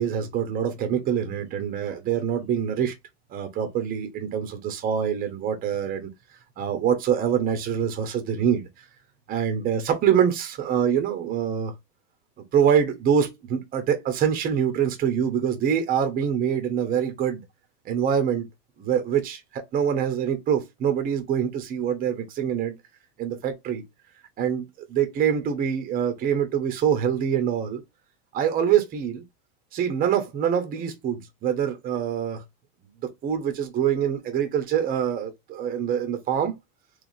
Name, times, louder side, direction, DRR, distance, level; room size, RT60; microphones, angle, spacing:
voice 1, 0.0-2.9 3.3-6.1 6.6-8.7 9.3-11.7 12.5-17.4 17.8-18.5 18.8-22.7 23.2-23.8 24.4-27.8 28.3-29.2 29.7-32.4 33.2-36.5, right 8 dB, 30° right, 1.0 m, -25 dB
3.4 x 3.4 x 2.7 m
supercardioid pair, 140°, 30 cm